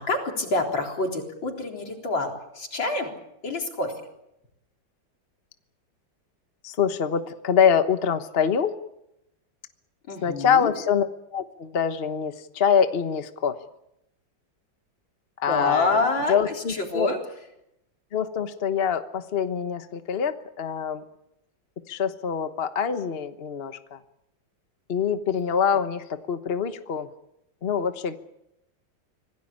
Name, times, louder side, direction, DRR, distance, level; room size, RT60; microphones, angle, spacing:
voice 1, 0.0-3.1 3.4-3.9 10.1-10.7 15.5-17.2, left 3 dB, 80° left, 2 dB, 4.7 m, -27 dB
voice 2, 6.6-8.7 10.2-11.1 11.3-13.6 15.4-16.0 16.3-17.1 18.1-21.0 21.9-24.0 24.9-27.1 27.6-28.2, left 7 dB, 35° left, 9 dB, 1.2 m, -25 dB
26.0 x 17.5 x 8.7 m, 0.84 s
omnidirectional pair, 2.1 m